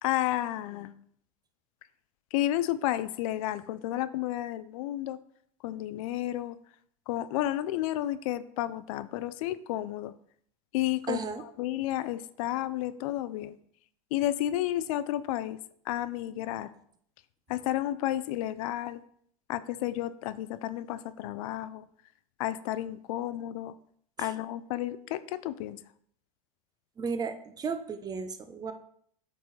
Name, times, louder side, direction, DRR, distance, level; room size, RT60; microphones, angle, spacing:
voice 1, 0.0-0.9 2.3-5.2 5.6-6.6 7.1-10.1 10.7-13.6 14.1-15.6 15.9-16.7 17.5-19.0 19.5-21.9 22.4-23.7 24.2-25.8, left 14 dB, 70° left, 15 dB, 0.4 m, -31 dB
voice 2, 11.1-11.4 24.2-24.3 27.0-28.7, right 5 dB, 20° right, 9 dB, 0.6 m, -34 dB
8.0 x 3.9 x 3.2 m, 0.65 s
supercardioid pair, 115°, 19 cm